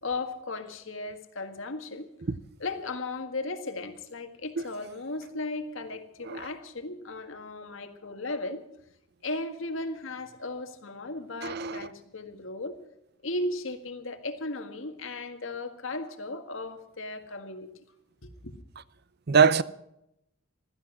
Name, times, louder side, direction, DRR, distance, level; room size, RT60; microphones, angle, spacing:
voice 1, 0.0-2.1 2.6-8.7 9.2-12.8 13.2-17.8 18.2-18.5, left 2 dB, 80° left, 1.8 m, -36 dB
voice 2, 11.4-11.9 19.3-19.6, right 6 dB, 55° right, 0.6 m, -23 dB
16.0 x 13.0 x 6.2 m
head